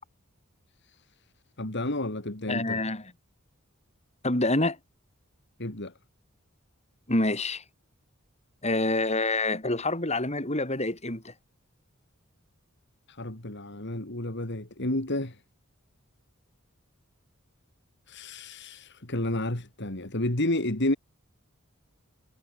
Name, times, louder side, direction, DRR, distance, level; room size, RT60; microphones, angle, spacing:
voice 1, 1.6-2.8 5.6-5.9 13.1-15.4 18.1-21.0, left 1 dB, 55° left, 3.2 m, -31 dB
voice 2, 2.5-3.1 4.2-4.8 7.1-7.6 8.6-11.3, left 2 dB, 30° left, 6.8 m, -27 dB
head